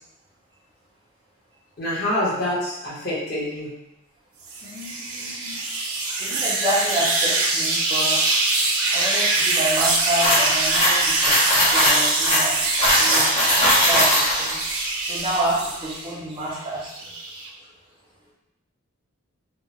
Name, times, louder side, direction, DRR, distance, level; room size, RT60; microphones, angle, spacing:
voice 1, 1.8-3.7, left 1 dB, 50° left, -8 dB, 1.0 m, -26 dB
sound 1, 4.5-16.1 16.5-17.5, right 3 dB, 85° right, 0.5 m, -23 dB
voice 2, 4.6-5.6 5.9-8.2 8.9-12.7 13.0-14.6 15.1-17.1, right 1 dB, 25° right, -4 dB, 0.4 m, -29 dB
sound 2, 10.2-14.5, left 1 dB, 30° left, 0.7 m, -20 dB
2.8 x 2.1 x 2.9 m, 0.87 s
head